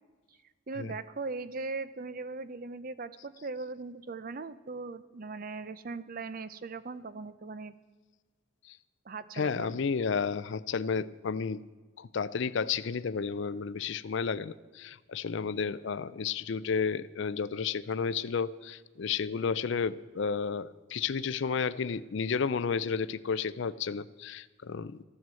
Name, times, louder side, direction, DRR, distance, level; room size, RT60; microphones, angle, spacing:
voice 1, 0.7-7.7 9.1-9.8, right 3 dB, 40° right, 15 dB, 0.6 m, -39 dB
voice 2, 9.3-11.6 12.0-25.0, left 5 dB, 60° left, 15 dB, 0.4 m, -32 dB
14.5 x 9.3 x 7.5 m, 1.4 s
head